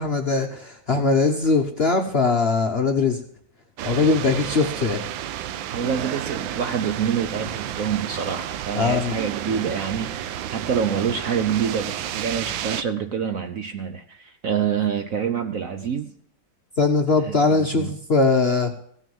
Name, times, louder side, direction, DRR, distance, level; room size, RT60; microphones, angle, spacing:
voice 1, 0.0-3.2 3.8-5.0 8.7-9.2 16.8-18.7, left 4 dB, 45° left, 0.9 m, -21 dB
sound 1, 3.8-12.8, right 11 dB, 85° right, 1.4 m, -31 dB
voice 2, 5.7-16.1 17.2-17.9, right 7 dB, 55° right, 1.0 m, -27 dB
16.0 x 6.4 x 7.1 m
omnidirectional pair, 2.1 m